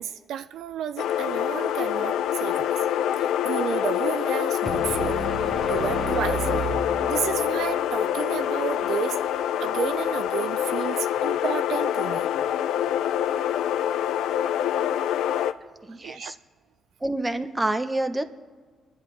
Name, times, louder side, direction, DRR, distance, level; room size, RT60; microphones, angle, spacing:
voice 1, 0.0-2.8 3.2-6.7 7.1-9.2 9.6-12.3 16.0-16.3, right 9 dB, 75° right, 0.3 m, -32 dB
sound 1, 1.0-15.5, left 10 dB, 85° left, 0.4 m, -26 dB
sound 2, 4.7-7.7, right 1 dB, 10° left, 1.2 m, -31 dB
voice 2, 15.8-16.4 17.0-18.2, right 1 dB, 15° right, 0.9 m, -27 dB
26.5 x 10.5 x 3.3 m
cardioid pair, 90°, 0 cm